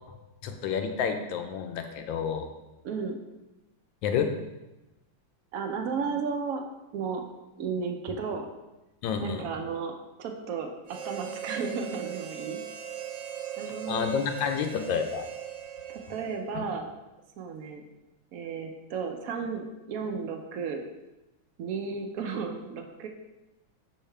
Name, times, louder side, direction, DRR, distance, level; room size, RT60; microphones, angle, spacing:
voice 1, 0.4-2.5 4.0-4.3 9.0-9.4 13.9-15.3 16.5-16.6, left 7 dB, 75° left, 6 dB, 1.3 m, -29 dB
voice 2, 2.8-3.2 5.5-6.6 6.9-7.3 7.6-8.5 9.2-9.9 10.2-12.6 13.6-14.1 15.9-16.9 17.4-17.8 18.3-20.8 21.6-23.1, right 5 dB, 75° right, 4 dB, 0.8 m, -33 dB
Harmonica, 10.9-16.6, right 10 dB, 60° right, 1.1 m, -39 dB
6.6 x 5.5 x 3.3 m, 1.0 s
omnidirectional pair, 2.2 m